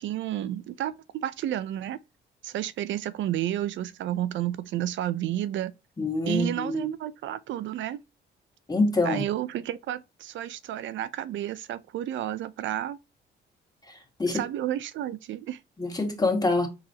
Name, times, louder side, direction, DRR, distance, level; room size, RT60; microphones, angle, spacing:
voice 1, 0.0-2.0 2.4-5.7 6.3-8.0 9.0-13.0 14.3-15.6, right 12 dB, 70° right, 0.5 m, -31 dB
voice 2, 6.0-6.9 8.7-9.2 13.9-14.4 15.8-16.7, left 2 dB, 20° left, 1.7 m, -26 dB
4.4 x 4.0 x 2.8 m
cardioid pair, 90°, 20 cm